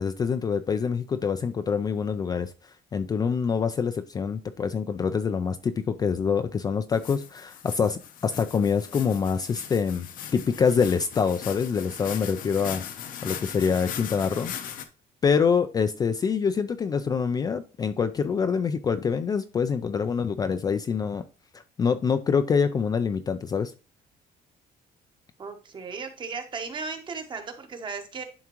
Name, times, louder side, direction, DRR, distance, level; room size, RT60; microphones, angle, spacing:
voice 1, 0.0-2.5 2.9-10.1 10.3-12.8 13.2-14.5 15.2-21.2 21.8-23.7, left 6 dB, 25° left, 10 dB, 0.4 m, -25 dB
sound 1, 6.9-14.9, left 9 dB, 60° left, 0.8 m, -39 dB
voice 2, 25.4-28.2, right 4 dB, 30° right, 6 dB, 1.0 m, -36 dB
11.0 x 3.6 x 3.0 m, 0.34 s
cardioid pair, 155°, 16 cm